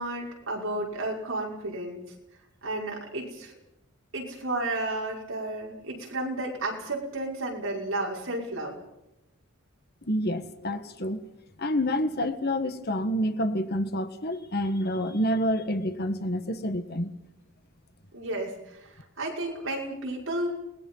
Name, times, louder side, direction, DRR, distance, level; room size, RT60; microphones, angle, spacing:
voice 1, 0.0-2.0 2.6-3.5 4.1-8.8 18.1-20.5, right 2 dB, 65° right, -2 dB, 5.7 m, -32 dB
voice 2, 10.1-11.2 11.6-17.1, equal, 50° left, 9 dB, 1.6 m, -28 dB
29.5 x 20.5 x 5.7 m, 0.89 s
head